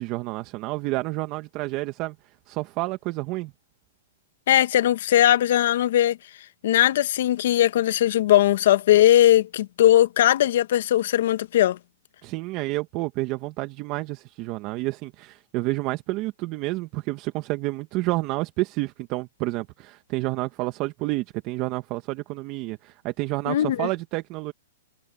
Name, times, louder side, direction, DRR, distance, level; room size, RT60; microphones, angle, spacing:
voice 1, 0.0-2.1 2.5-3.5 12.2-24.5, right 21 dB, 35° right, 1.5 m, -29 dB
voice 2, 4.5-6.2 6.6-11.8 23.5-23.9, left 12 dB, 60° left, 1.2 m, -19 dB
hypercardioid pair, 145°, 0 cm